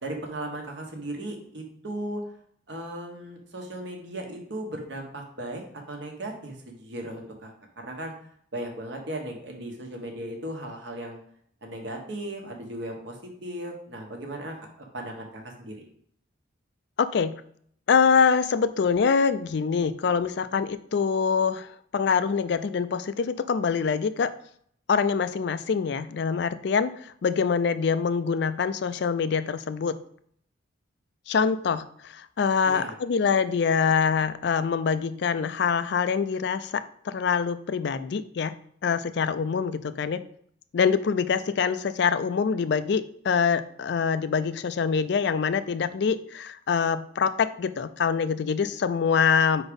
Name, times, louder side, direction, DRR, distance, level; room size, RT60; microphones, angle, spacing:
voice 1, 0.0-2.2 2.7-7.5 7.8-8.1 8.5-11.2 11.6-13.2 13.4-15.8 32.6-33.0, right 1 dB, 65° right, 2 dB, 1.2 m, -36 dB
voice 2, 17.0-17.3 17.9-24.3 24.9-30.0 31.3-38.6 38.8-40.2 40.7-49.6, left 6 dB, 60° left, 13 dB, 0.4 m, -25 dB
4.9 x 4.0 x 5.2 m, 0.64 s
head